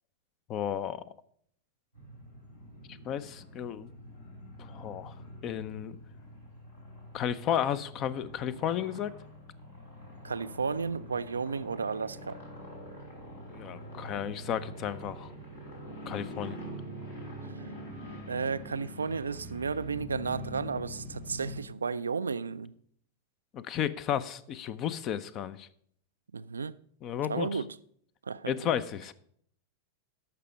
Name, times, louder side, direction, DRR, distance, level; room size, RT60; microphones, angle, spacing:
voice 1, 0.5-1.0 3.0-3.9 4.6-5.1 5.4-6.0 7.1-9.1 13.5-15.3 16.1-16.6 23.5-25.7 27.0-27.5 28.5-29.1, left 9 dB, 35° left, 0.6 m, -33 dB
sound 1, 1.9-21.6, equal, 75° left, 3.2 m, -45 dB
voice 2, 10.2-12.4 17.5-17.7 18.3-22.7 26.3-26.8 27.2-27.8 28.2-28.5, right 5 dB, 75° right, 0.3 m, -33 dB
13.5 x 5.8 x 5.1 m
figure-of-eight pair, 90°, 0 cm